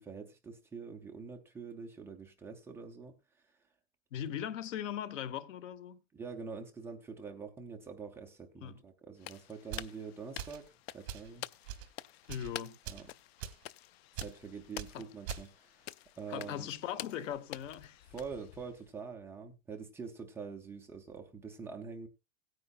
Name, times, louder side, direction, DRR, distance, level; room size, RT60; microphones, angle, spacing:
voice 1, 0.0-3.1 6.1-10.6 10.9-11.4 12.9-13.0 14.1-15.9 16.2-16.7 18.1-22.1, right 5 dB, 5° right, 0.5 m, -45 dB
voice 2, 4.1-6.0 8.6-8.8 12.3-12.8 14.9-15.1 16.3-18.0, left 10 dB, 85° left, 1.3 m, -39 dB
sound 1, 9.2-18.9, left 14 dB, 55° left, 0.5 m, -49 dB
sound 2, 9.7-9.9 10.4-10.7 11.1-11.3 11.7-11.9 12.2-12.5 12.9-13.1 13.4-13.6 14.2-14.4 14.8-14.9 15.3-15.5, right 10 dB, 55° right, 1.9 m, -42 dB
17.5 x 9.6 x 2.4 m
supercardioid pair, 175°, 37 cm